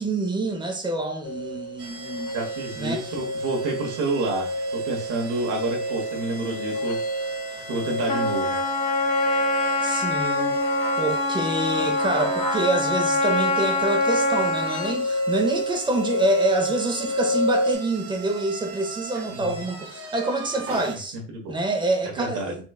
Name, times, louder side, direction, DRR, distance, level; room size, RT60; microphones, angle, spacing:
voice 1, 0.0-2.3 2.8-3.0 9.8-10.6 11.0-21.2 21.5-22.6, right 2 dB, 15° right, 0.8 m, -26 dB
sound 1, 1.2-17.8, equal, 65° left, 0.9 m, -28 dB
sound 2, 1.8-21.0, right 3 dB, 45° right, 1.3 m, -40 dB
voice 2, 2.3-7.0 7.3-7.4 7.7-8.6 19.3-19.6 21.1-21.5 22.2-22.6, right 2 dB, 65° right, 1.4 m, -29 dB
Trumpet, 8.1-15.0, left 3 dB, 20° left, 0.7 m, -26 dB
4.1 x 3.1 x 2.3 m
supercardioid pair, 110°, 33 cm